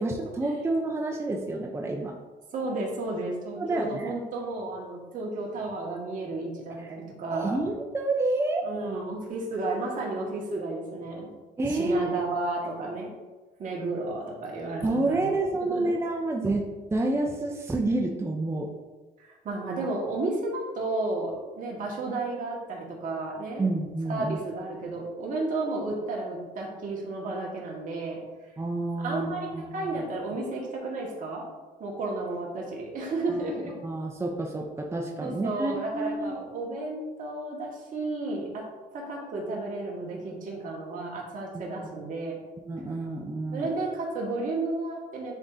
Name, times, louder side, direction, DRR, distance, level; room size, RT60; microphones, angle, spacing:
voice 1, 0.0-2.1 3.6-4.1 6.8-6.9 7.3-8.6 11.6-12.1 14.8-16.6 16.9-18.7 23.6-24.4 28.6-30.0 33.3-33.5 33.8-36.3 42.6-43.7, right 2 dB, 15° right, 1 dB, 0.7 m, -29 dB
voice 2, 2.5-7.6 8.6-11.3 11.7-13.1 13.6-15.3 15.7-15.9 19.2-23.7 24.0-28.2 29.0-31.4 31.8-33.7 35.2-38.6 38.9-42.4 43.5-45.3, right 2 dB, 50° right, -2 dB, 1.8 m, -32 dB
9.9 x 3.7 x 2.7 m, 1.2 s
cardioid pair, 110°, 17 cm